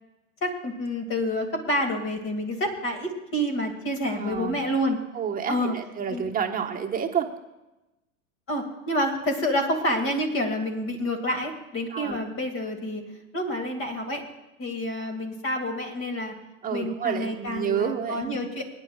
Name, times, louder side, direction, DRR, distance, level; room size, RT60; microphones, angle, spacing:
voice 1, 0.4-5.0 5.5-5.7 6.1-6.2 8.5-13.0 13.3-14.2 14.6-16.3 16.7-18.6, equal, 30° left, 4 dB, 2.4 m, -28 dB
voice 2, 4.1-4.6 5.1-7.3 11.9-12.2 16.6-18.4, right 7 dB, 20° right, 2 dB, 1.4 m, -29 dB
24.5 x 10.0 x 2.4 m, 0.97 s
hypercardioid pair, 105°, 42 cm